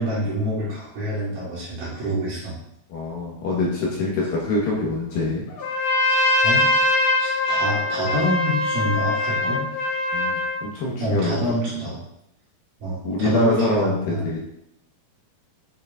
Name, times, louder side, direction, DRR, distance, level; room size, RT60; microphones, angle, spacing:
voice 1, 0.0-2.6 6.1-6.7 7.2-9.6 11.0-12.0 12.8-14.2, equal, 55° right, -7 dB, 3.6 m, -26 dB
voice 2, 2.9-5.4 9.4-9.5 10.1-11.3 13.0-14.4, left 2 dB, 70° left, -4 dB, 2.5 m, -24 dB
Trumpet, 5.6-10.6, left 2 dB, 85° left, 1.4 m, -22 dB
9.2 x 6.4 x 2.4 m, 0.78 s
omnidirectional pair, 4.9 m